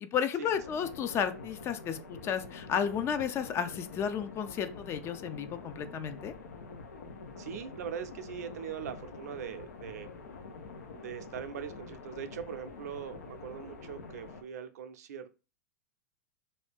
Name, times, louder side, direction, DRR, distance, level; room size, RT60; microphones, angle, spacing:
voice 1, 0.0-6.3, left 8 dB, 30° left, 0.4 m, -33 dB
sound 1, 0.6-14.4, left 4 dB, 85° left, 0.7 m, -46 dB
voice 2, 7.4-10.1 11.0-15.4, right 8 dB, 75° right, 0.5 m, -41 dB
2.7 x 2.6 x 3.5 m
hypercardioid pair, 115°, 9 cm